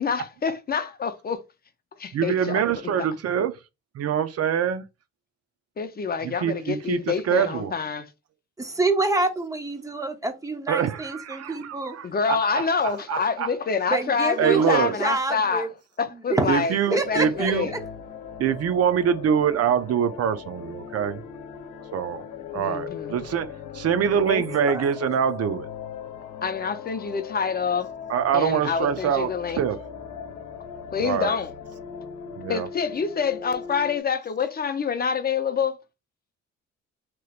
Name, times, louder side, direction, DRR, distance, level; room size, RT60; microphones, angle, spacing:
voice 1, 0.0-1.4 2.0-2.6 5.8-8.1 12.0-15.7 16.0-17.7 22.5-23.2 26.4-27.9 28.3-29.6 30.9-31.5 32.5-35.8, left 6 dB, 30° left, 0.5 m, -27 dB
voice 2, 2.1-3.5 3.9-4.8 6.2-7.7 10.7-13.5 14.4-14.9 16.5-17.7 18.4-21.2 21.9-22.2 22.5-25.7 28.1-29.8 31.0-31.3 32.4-32.7, right 8 dB, 55° right, 0.5 m, -25 dB
voice 3, 8.6-12.0 13.9-15.7 16.3-16.5 16.9-17.8 24.3-24.9, right 3 dB, 10° right, 0.7 m, -27 dB
sound 1, 17.0-34.0, left 8 dB, 80° left, 0.8 m, -39 dB
3.2 x 3.0 x 2.4 m
cardioid pair, 90°, 30 cm